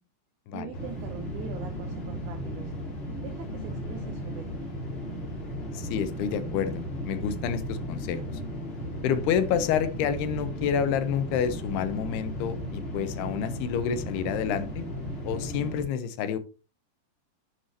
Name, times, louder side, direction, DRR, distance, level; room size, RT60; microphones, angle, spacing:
voice 1, 0.5-2.7 3.2-4.7, right 9 dB, 80° right, 7 dB, 1.8 m, -42 dB
sound 1, 0.7-15.8, equal, 35° left, 4.1 m, -35 dB
voice 2, 5.7-8.2 9.0-14.8 15.2-16.4, left 8 dB, 80° left, 11 dB, 2.8 m, -29 dB
11.5 x 7.6 x 2.8 m, 0.31 s
omnidirectional pair, 4.8 m